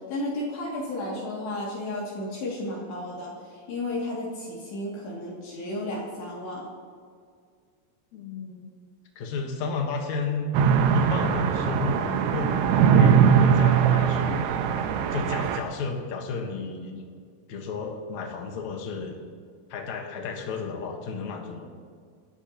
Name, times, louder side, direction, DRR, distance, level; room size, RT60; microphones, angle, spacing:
voice 1, 0.1-6.7, left 1 dB, 60° left, -5 dB, 4.6 m, -33 dB
voice 2, 8.1-8.7 9.1-10.5 10.9-14.4 15.1-17.0 17.5-19.2 19.7-21.7, left 4 dB, 90° left, 2 dB, 1.6 m, -33 dB
sound 1, 10.5-15.6, right 7 dB, 75° right, 3.2 m, -21 dB
28.0 x 13.5 x 3.0 m, 2.1 s
omnidirectional pair, 5.7 m